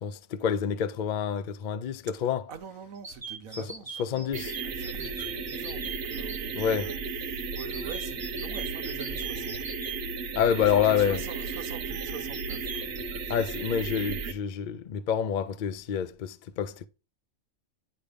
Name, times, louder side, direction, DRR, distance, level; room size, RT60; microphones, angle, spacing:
voice 1, 0.0-2.5 3.6-3.7 4.0-4.5 6.6-6.9 10.4-11.2 13.3-16.9, left 8 dB, 80° left, 0.4 m, -28 dB
voice 2, 2.5-4.3 4.6-7.0 7.3-9.6 10.7-12.9 13.2-13.3, right 7 dB, 80° right, 1.3 m, -43 dB
sound 1, 3.0-6.4 7.6-10.0 12.3-13.0, right 5 dB, 25° right, 0.7 m, -39 dB
sound 2, 4.3-14.3, right 4 dB, 55° right, 0.9 m, -34 dB
9.9 x 3.4 x 5.1 m
omnidirectional pair, 1.4 m